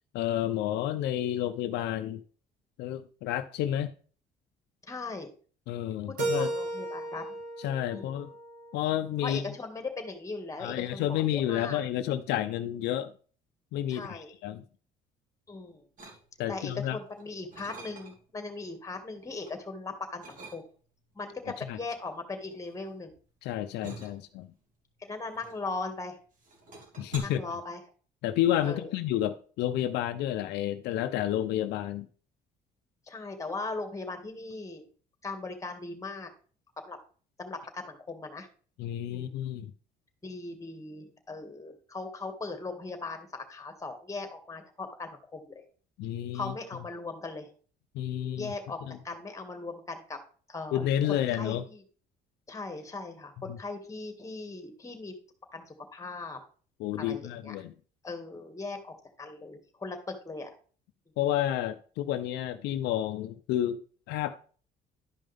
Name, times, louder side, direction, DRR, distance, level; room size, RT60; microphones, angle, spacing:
voice 1, 0.1-2.2 2.8-3.9 5.7-6.5 7.6-8.3 8.7-9.4 10.6-13.1 13.7-14.6 16.4-17.0 21.7-21.8 23.4-24.5 27.0-27.4 28.2-32.1 38.8-39.7 46.0-46.5 47.9-48.5 50.7-51.6 53.5-53.6 56.8-57.7 61.2-63.8 64.1-64.4, left 11 dB, 85° left, 0.6 m, -30 dB
voice 2, 4.8-5.3 6.1-7.4 7.9-8.2 9.2-11.8 13.9-14.3 15.5-15.9 16.5-20.6 21.1-23.2 24.0-24.2 25.0-26.2 27.2-27.8 28.6-28.9 33.1-34.9 35.2-36.3 36.8-37.0 37.4-38.5 39.1-39.4 40.2-45.6 46.3-47.5 48.4-50.2 50.5-51.8 52.5-55.2 55.5-56.4 57.0-57.5 58.0-60.5, left 3 dB, 20° left, 1.9 m, -39 dB
Keyboard (musical), 6.2-9.1, right 2 dB, 85° right, 2.6 m, -35 dB
sound 1, 16.0-16.6 17.1-18.4 18.8-19.6 20.2-21.0 21.9-26.0 26.3-27.2, right 3 dB, 50° right, 2.9 m, -48 dB
11.5 x 5.4 x 3.5 m
cardioid pair, 110°, 17 cm